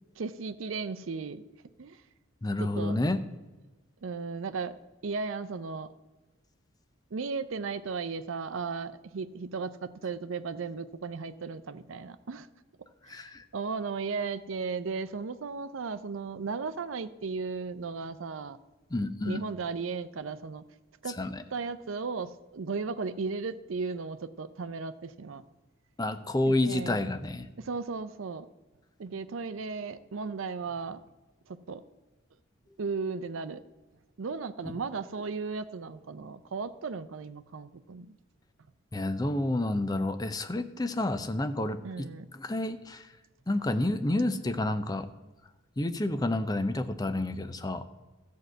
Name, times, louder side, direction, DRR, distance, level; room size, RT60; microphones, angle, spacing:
voice 1, 0.2-1.4 1.8-2.0 2.6-3.0 4.0-5.9 7.1-12.5 13.1-18.6 19.2-20.7 21.0-21.2 21.5-25.4 26.5-27.1 27.6-28.5 29.0-31.0 31.5-31.8 32.8-33.6 34.2-38.2 41.8-42.3, right 4 dB, 75° right, 12 dB, 0.5 m, -35 dB
voice 2, 2.4-3.2 13.1-13.4 18.9-19.4 21.2-21.4 26.0-27.5 38.9-42.1 42.3-43.1 43.5-45.1 45.8-47.8, left 1 dB, 20° left, 10 dB, 0.5 m, -29 dB
13.5 x 4.7 x 7.7 m, 1.2 s
head